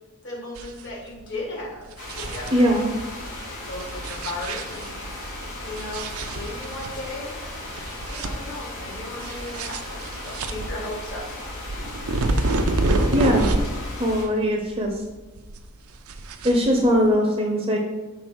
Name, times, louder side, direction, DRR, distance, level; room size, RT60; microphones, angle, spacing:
voice 1, 0.2-1.9 2.2-2.7 3.7-7.5 8.0-11.2 12.3-12.5, left 2 dB, 55° left, -2 dB, 2.1 m, -36 dB
sound 1, 0.6-0.9 1.2-1.3 1.8-2.9 3.7-5.1 5.8-6.9 7.3-7.4 7.8-8.8 9.2-13.9 14.2-15.1 15.4-17.1, right 2 dB, 75° right, 0.6 m, -27 dB
sound 2, 2.0-14.3, left 1 dB, 90° left, 2.2 m, -36 dB
voice 2, 2.5-2.9 13.1-13.5 14.0-14.9 16.4-17.8, equal, 25° right, 1 dB, 0.7 m, -20 dB
6.3 x 4.0 x 6.0 m, 1.2 s
head